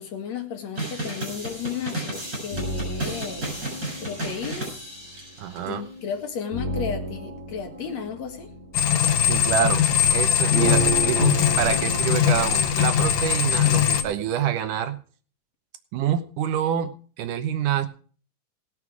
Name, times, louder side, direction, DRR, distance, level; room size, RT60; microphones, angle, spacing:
voice 1, 0.0-4.8 5.6-8.5, left 7 dB, 60° left, 2.8 m, -34 dB
sound 1, 0.8-5.7, right 2 dB, 25° right, 7.6 m, -33 dB
sound 2, 1.3-14.4, right 2 dB, 25° left, 6.7 m, -35 dB
voice 2, 5.4-5.8 9.2-15.0 15.9-16.9 17.2-17.9, right 10 dB, 80° right, 2.6 m, -26 dB
sound 3, 8.7-14.0, left 9 dB, 85° left, 2.9 m, -21 dB
19.0 x 7.5 x 4.8 m
omnidirectional pair, 3.6 m